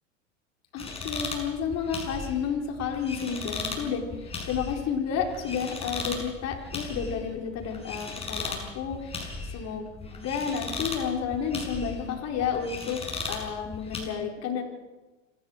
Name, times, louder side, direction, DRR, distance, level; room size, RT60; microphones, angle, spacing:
voice 1, 0.7-13.0 13.3-14.6, left 6 dB, 40° left, 2 dB, 4.5 m, -31 dB
sound 1, 0.8-14.0, left 3 dB, 15° left, 6.6 m, -37 dB
26.5 x 15.5 x 6.5 m, 1.2 s
hypercardioid pair, 95°, 39 cm